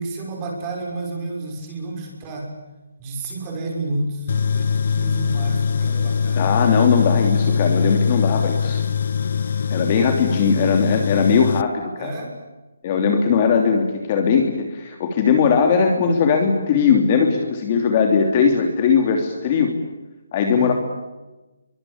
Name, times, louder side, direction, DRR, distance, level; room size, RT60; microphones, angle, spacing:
voice 1, 0.0-2.6 3.0-6.4 7.1-7.2 10.6-10.7 12.0-12.4 20.5-20.7, right 2 dB, 15° right, 1 dB, 6.2 m, -30 dB
Tools, 4.3-11.6, left 6 dB, 45° left, 1.1 m, -22 dB
voice 2, 6.3-8.8 9.7-12.1 12.8-19.7 20.3-20.7, left 6 dB, 25° left, 3 dB, 3.1 m, -19 dB
29.0 x 24.0 x 8.6 m, 1.1 s
hypercardioid pair, 175°, 0 cm